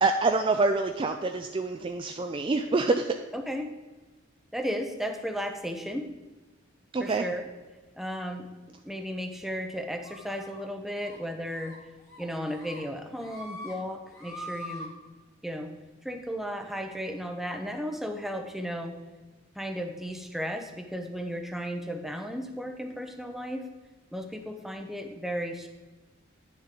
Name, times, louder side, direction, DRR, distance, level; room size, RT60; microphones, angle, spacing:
voice 1, 0.0-3.1 6.9-7.3, right 3 dB, 25° right, 5 dB, 0.3 m, -26 dB
voice 2, 3.3-3.7 4.5-6.1 7.0-7.4 8.0-8.5 8.8-11.8 12.2-14.9 15.4-15.7 16.0-19.0 19.6-23.7 24.1-25.7, equal, ahead, 4 dB, 0.7 m, -34 dB
sound 1, 10.0-10.6 11.0-11.2 11.5-11.8 12.1-12.8 13.1-13.7 14.1-14.9, left 1 dB, 15° left, 1.5 m, -43 dB
9.7 x 6.6 x 3.7 m, 1.2 s
head